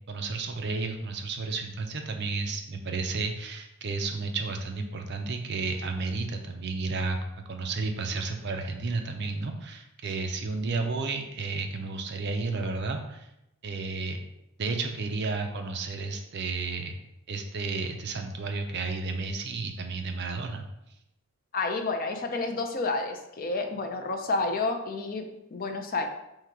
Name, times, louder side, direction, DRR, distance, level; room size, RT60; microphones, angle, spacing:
voice 1, 0.1-7.2 7.5-13.3 13.6-14.2 14.6-17.0 17.3-20.7, right 3 dB, 50° right, 5 dB, 0.5 m, -32 dB
voice 2, 21.5-26.1, left 3 dB, 40° left, 5 dB, 0.4 m, -30 dB
3.7 x 2.7 x 4.5 m, 0.85 s
head